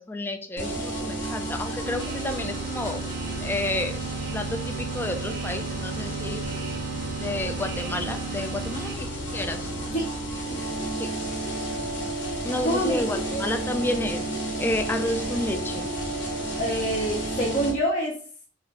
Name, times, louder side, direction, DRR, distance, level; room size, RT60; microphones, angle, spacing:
voice 1, 0.0-3.0 3.4-4.0 4.3-6.4 7.2-9.7 11.0-11.1 12.4-14.3 14.6-15.9, left 1 dB, 10° left, 6 dB, 0.3 m, -30 dB
sound 1, 0.6-17.7, right 1 dB, 75° left, 1.6 m, -32 dB
sound 2, 1.8-9.0, right 10 dB, 60° right, 0.5 m, -37 dB
voice 2, 10.5-10.9 12.6-13.0 13.3-13.4 16.6-18.2, right 1 dB, 40° left, -4 dB, 0.7 m, -27 dB
4.1 x 2.5 x 3.2 m, 0.43 s
head